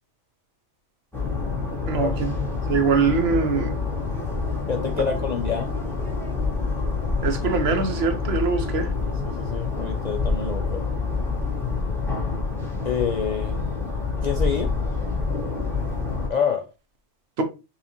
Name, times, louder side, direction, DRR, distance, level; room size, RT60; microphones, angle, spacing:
sound 1, 1.1-16.3, left 4 dB, ahead, 1.0 m, -27 dB
voice 1, 1.9-2.3 2.7-3.8 7.2-8.9 17.4-17.5, right 5 dB, 65° right, 0.9 m, -23 dB
voice 2, 4.7-5.7 9.2-10.9 12.8-13.6 14.2-14.7 16.3-16.6, left 6 dB, 55° left, 0.4 m, -27 dB
5.6 x 2.4 x 2.8 m
omnidirectional pair, 1.2 m